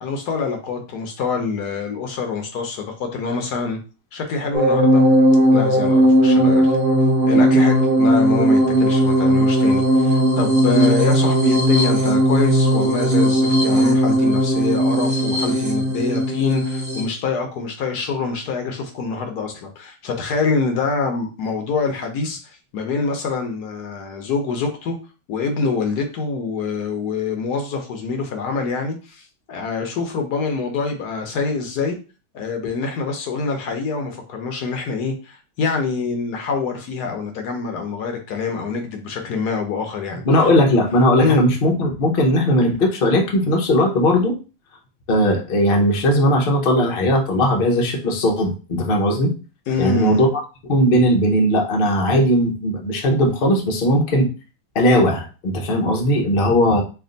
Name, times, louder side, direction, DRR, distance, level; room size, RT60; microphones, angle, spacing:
voice 1, 0.0-3.8 4.1-5.1 5.5-6.8 7.3-25.0 25.3-32.0 32.3-40.2 41.2-41.5 49.7-50.2, left 4 dB, 70° left, 4 dB, 1.2 m, -25 dB
sound 1, 4.5-17.0, equal, 30° right, 1.1 m, -17 dB
voice 2, 40.2-44.4 45.1-49.3 49.8-50.3 50.6-54.3 54.7-56.8, equal, 45° left, 1 dB, 0.7 m, -18 dB
3.3 x 2.5 x 3.8 m, 0.33 s
omnidirectional pair, 1.8 m